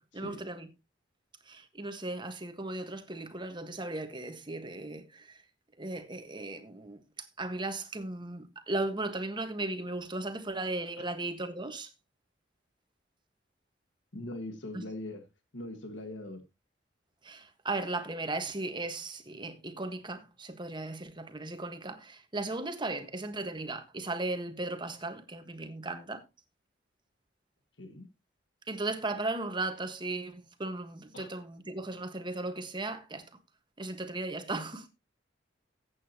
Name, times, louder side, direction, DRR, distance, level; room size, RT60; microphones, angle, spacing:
voice 1, 0.1-0.7 1.5-5.4 5.8-11.9 14.7-14.8 17.2-26.2 28.7-33.3 33.8-34.9, right 2 dB, 25° right, 1.5 m, -36 dB
voice 2, 14.1-15.2 15.5-16.5 27.8-28.1 31.1-31.3, left 1 dB, 75° left, 1.7 m, -41 dB
14.0 x 8.6 x 2.9 m
head